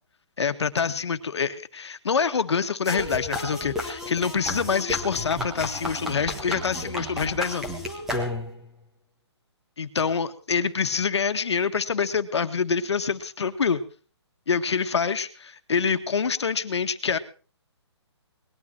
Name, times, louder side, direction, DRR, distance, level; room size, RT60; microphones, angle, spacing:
voice 1, 0.4-7.7 9.8-13.8 14.5-17.2, left 6 dB, 70° left, 9 dB, 1.7 m, -26 dB
sound 1, 2.8-8.7, left 1 dB, 5° right, 1.4 m, -32 dB
20.0 x 12.5 x 4.5 m, 0.39 s
hypercardioid pair, 180°, 15 cm